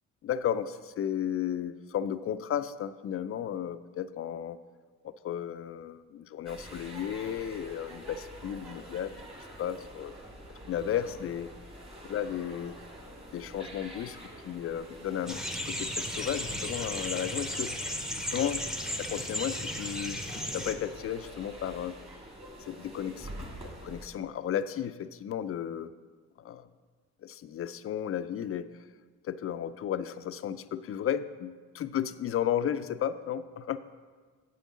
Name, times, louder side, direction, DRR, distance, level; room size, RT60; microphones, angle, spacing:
voice 1, 0.2-4.6 5.0-9.1 9.6-10.1 10.7-11.5 12.0-12.8 13.3-14.2 14.4-18.6 19.0-20.2 20.5-22.0 22.6-25.9 26.4-26.7 27.2-28.7 29.2-33.8, left 9 dB, 50° left, 12 dB, 0.4 m, -34 dB
sound 1, 6.5-24.1, right 1 dB, 20° right, 2.1 m, -46 dB
sound 2, 15.3-20.7, equal, ahead, 0.9 m, -35 dB
7.6 x 5.3 x 7.4 m, 1.5 s
cardioid pair, 90°, 30 cm